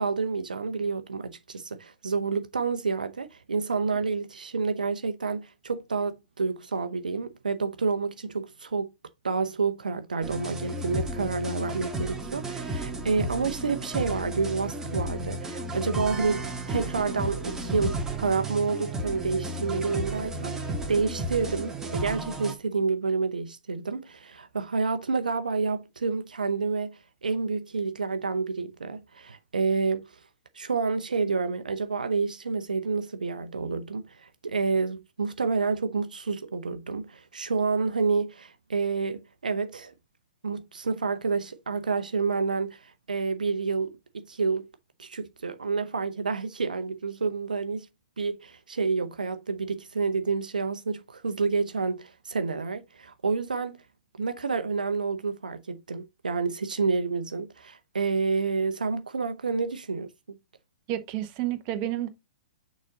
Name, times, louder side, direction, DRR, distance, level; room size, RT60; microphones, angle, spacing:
voice 1, 0.0-8.9 9.2-16.4 16.7-30.0 30.6-39.9 40.4-44.7 45.0-47.9 48.2-53.8 54.2-60.4, right 4 dB, 80° right, 0.6 m, -29 dB
sound 1, 10.2-22.5, right 1 dB, 10° right, 1.4 m, -33 dB
voice 2, 60.9-62.1, right 13 dB, 35° right, 0.9 m, -30 dB
6.4 x 4.0 x 3.9 m
figure-of-eight pair, 115°, 4 cm